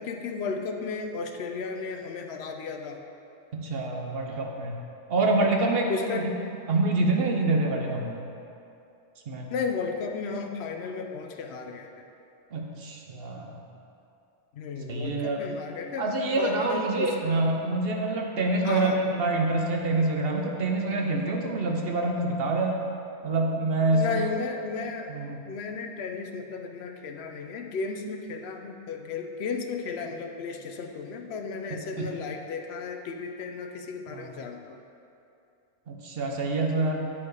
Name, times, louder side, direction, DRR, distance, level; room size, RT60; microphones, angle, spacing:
voice 1, 0.0-3.0 5.2-5.3 5.9-6.3 9.5-12.1 14.5-16.1 16.4-17.2 18.6-19.0 23.9-25.1 25.5-34.8, left 4 dB, 70° left, 4 dB, 0.9 m, -34 dB
voice 2, 3.5-4.8 5.1-6.3 6.7-8.2 9.3-9.5 12.5-13.5 14.9-15.4 16.0-22.8 23.2-24.2 25.1-25.4 32.0-32.1 34.1-34.4 35.9-37.0, right 2 dB, 60° right, 1 dB, 1.0 m, -26 dB
8.7 x 4.7 x 4.8 m, 2.7 s
omnidirectional pair, 1.2 m